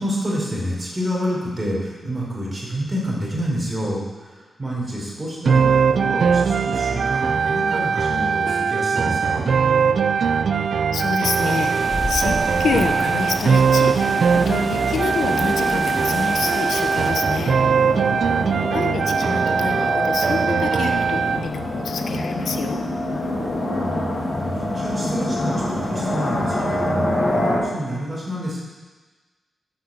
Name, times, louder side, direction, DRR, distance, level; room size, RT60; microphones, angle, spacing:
voice 1, 0.0-9.5 17.9-18.7 23.5-28.6, equal, 20° right, -4 dB, 4.4 m, -28 dB
sound 1, 5.5-21.5, right 6 dB, 60° right, 0.4 m, -20 dB
voice 2, 10.9-17.6 18.7-22.8, left 5 dB, 85° left, 5 dB, 1.0 m, -27 dB
sound 2, 11.3-17.1, left 1 dB, 10° left, 1.9 m, -31 dB
sound 3, 11.4-27.6, left 1 dB, 45° left, 3.4 m, -27 dB
9.8 x 8.2 x 8.0 m, 1.3 s
wide cardioid pair, 130°, 0 cm